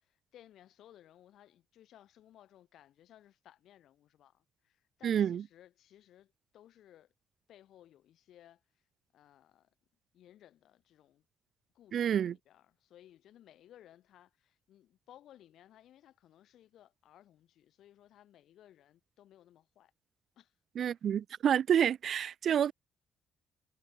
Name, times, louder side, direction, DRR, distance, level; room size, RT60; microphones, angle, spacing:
voice 1, 0.0-7.1 7.5-8.8 9.1-9.7 10.1-11.2 11.7-19.9 20.4-20.5, left 12 dB, 75° left, 4.3 m, -60 dB
voice 2, 5.0-5.4 11.9-12.3 20.8-22.7, right 9 dB, 60° right, 0.4 m, -28 dB
cardioid pair, 90°, 0 cm